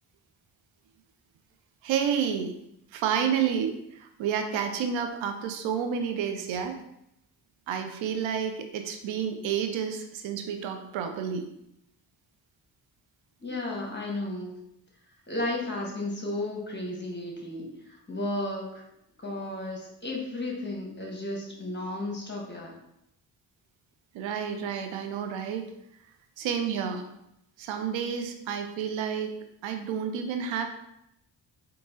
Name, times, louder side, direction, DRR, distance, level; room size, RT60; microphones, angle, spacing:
voice 1, 1.8-2.5 2.9-6.8 7.7-11.4 24.1-25.7 26.4-27.0 27.6-29.3 29.6-30.6, right 7 dB, 75° right, 6 dB, 0.6 m, -30 dB
voice 2, 13.4-14.5 15.3-18.8 19.2-22.7, left 2 dB, 25° left, -1 dB, 1.5 m, -33 dB
3.8 x 2.9 x 3.8 m, 0.80 s
supercardioid pair, 50°, 46 cm